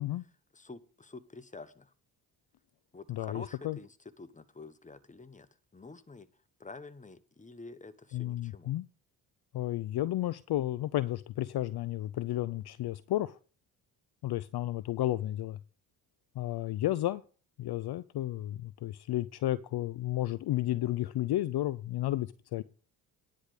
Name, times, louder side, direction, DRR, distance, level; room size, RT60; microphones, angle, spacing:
voice 1, 0.0-1.9 2.9-6.3 6.6-8.7, left 3 dB, 15° left, 1.2 m, -49 dB
voice 2, 3.1-3.8 8.1-8.8 9.5-13.4 14.2-15.6 16.4-17.2 17.6-22.6, left 14 dB, 50° left, 0.6 m, -32 dB
10.0 x 5.1 x 8.2 m
hypercardioid pair, 50°, 49 cm